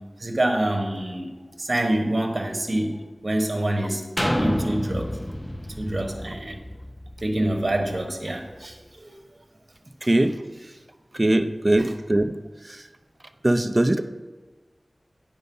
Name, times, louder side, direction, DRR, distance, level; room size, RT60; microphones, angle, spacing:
voice 1, 0.2-1.3 1.6-3.0 3.2-5.1 5.8-6.6 7.2-9.1, right 1 dB, 50° right, 3 dB, 1.4 m, -26 dB
sound 1, 4.2-7.9 8.5-8.6, equal, 10° left, 0.7 m, -29 dB
voice 2, 10.0-10.4 11.1-12.3 12.6-12.8 13.4-14.0, right 1 dB, 30° right, 9 dB, 0.6 m, -21 dB
9.1 x 5.4 x 5.5 m, 1.3 s
wide cardioid pair, 60°, 0 cm